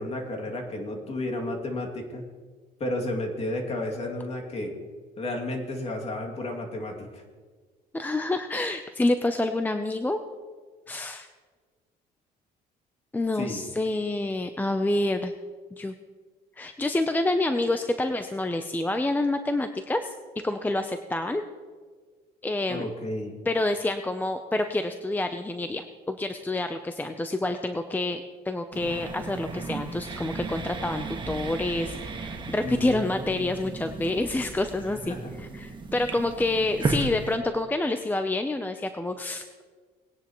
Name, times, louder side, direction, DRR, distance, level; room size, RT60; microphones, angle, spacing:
voice 1, 0.0-2.2 2.8-4.7 5.2-7.2 13.4-13.6 22.7-23.4 32.6-33.7 35.1-35.3, left 1 dB, 35° left, 1 dB, 2.5 m, -32 dB
voice 2, 7.9-10.2 10.9-11.3 13.1-15.3 15.7-15.9 16.6-20.1 20.4-21.4 22.4-22.9 23.5-39.6, left 2 dB, 10° left, 7 dB, 0.6 m, -28 dB
sound 1, 28.7-37.4, right 3 dB, 30° right, 1.5 m, -35 dB
20.0 x 10.0 x 3.1 m, 1.5 s
cardioid pair, 110°, 17 cm